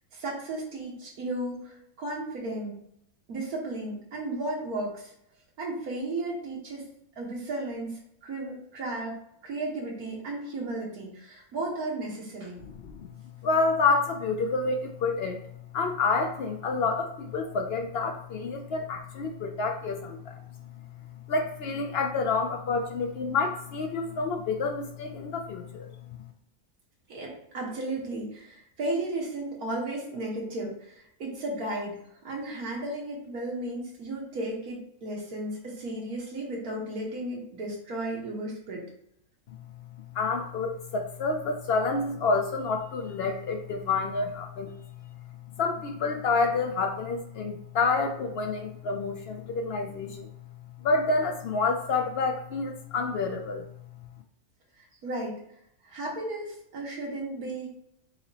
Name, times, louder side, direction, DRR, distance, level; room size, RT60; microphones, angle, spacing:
voice 1, 0.1-2.8 3.3-5.1 5.6-6.8 7.2-9.2 9.4-12.6 27.1-32.0 32.2-38.8 55.0-55.4 55.8-57.7, right 2 dB, 85° right, -3 dB, 1.8 m, -34 dB
voice 2, 13.4-15.4 15.7-20.4 20.8-20.9 21.3-26.2 39.5-39.6 40.1-44.7 45.6-50.3 50.8-53.6, left 4 dB, 70° left, 5 dB, 0.6 m, -28 dB
5.9 x 3.0 x 2.8 m, 0.74 s
omnidirectional pair, 1.5 m